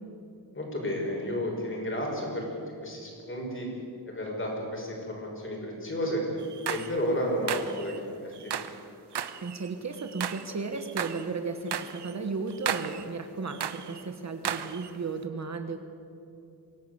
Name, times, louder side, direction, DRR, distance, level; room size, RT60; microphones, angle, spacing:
voice 1, 0.5-2.5 2.8-3.7 4.1-6.2 6.7-8.5, equal, 30° left, -1 dB, 5.9 m, -32 dB
sound 1, 6.4-7.0 7.5-8.0 8.3-8.8 9.1-10.5 10.8-11.3 11.7-12.2 12.5-13.1 13.5-14.0 14.5-14.9, right 9 dB, 85° right, 1.2 m, -35 dB
voice 2, 9.4-15.8, right 4 dB, 45° right, 7 dB, 1.4 m, -34 dB
25.0 x 16.5 x 8.1 m, 2.7 s
wide cardioid pair, 170°, 39 cm